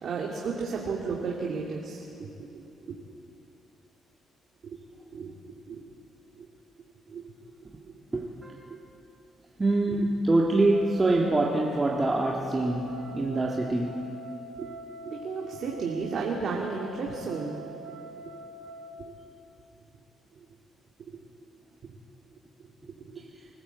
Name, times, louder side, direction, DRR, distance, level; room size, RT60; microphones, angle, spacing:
voice 1, 0.0-3.0 4.6-4.8 5.1-5.9 6.3-6.5 7.1-7.2 7.6-7.9 8.7-8.8 9.9-10.0 11.1-11.2 15.0-17.6 18.2-18.3 18.9-19.1 20.4-20.5 21.1-21.2 21.8-22.0 22.6-22.7 23.0-23.2, right 4 dB, 60° right, -2 dB, 2.4 m, -34 dB
voice 2, 8.1-8.7 9.6-14.0, right 2 dB, 25° right, -1 dB, 1.7 m, -25 dB
sound 1, 10.7-18.9, right 1 dB, 85° right, 3.0 m, -44 dB
24.5 x 14.5 x 8.1 m, 2.9 s
cardioid pair, 90°, 0 cm